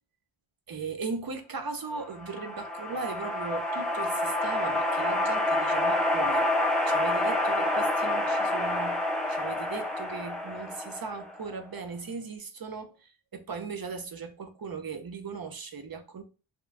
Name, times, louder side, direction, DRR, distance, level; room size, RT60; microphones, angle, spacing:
voice 1, 0.7-6.4 6.9-9.0 9.3-16.2, right 4 dB, 45° right, 0.6 m, -38 dB
sound 1, 2.0-11.5, left 1 dB, ahead, 0.5 m, -28 dB
2.9 x 2.2 x 2.4 m
wide cardioid pair, 70°, 49 cm